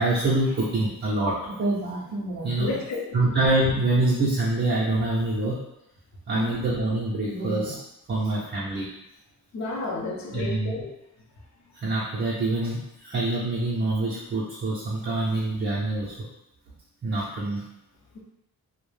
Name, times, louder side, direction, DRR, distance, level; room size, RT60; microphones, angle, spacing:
voice 1, 0.0-2.7 3.1-5.6 6.3-7.8 8.1-8.9 10.3-10.7 11.7-16.2 17.0-17.6, right 2 dB, 30° right, -7 dB, 0.5 m, -25 dB
voice 2, 2.6-3.2 6.3-6.6 9.5-10.9, left 3 dB, 45° left, -1 dB, 0.6 m, -31 dB
2.2 x 2.0 x 3.2 m, 0.86 s
wide cardioid pair, 150°, 37 cm